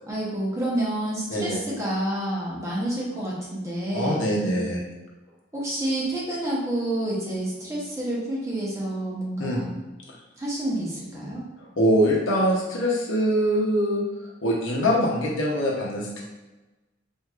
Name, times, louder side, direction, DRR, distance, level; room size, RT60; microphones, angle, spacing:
voice 1, 0.1-4.2 5.5-9.7 10.4-11.4, right 1 dB, 15° right, -6 dB, 0.9 m, -28 dB
voice 2, 3.9-4.8 9.4-9.6 11.8-14.0 14.4-16.2, equal, 80° left, -3 dB, 0.9 m, -23 dB
4.5 x 2.7 x 2.4 m, 1.1 s
head